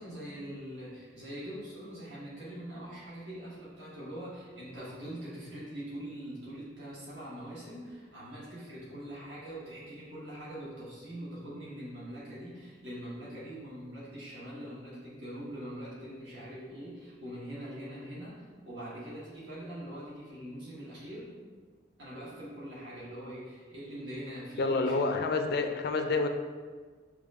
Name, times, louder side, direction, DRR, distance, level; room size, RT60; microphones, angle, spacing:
voice 1, 0.0-21.4 22.0-25.1 25.4-26.0, equal, 70° right, -9 dB, 1.4 m, -43 dB
voice 2, 24.6-26.3, left 3 dB, 60° left, 6 dB, 0.4 m, -28 dB
6.8 x 2.9 x 2.5 m, 1.5 s
head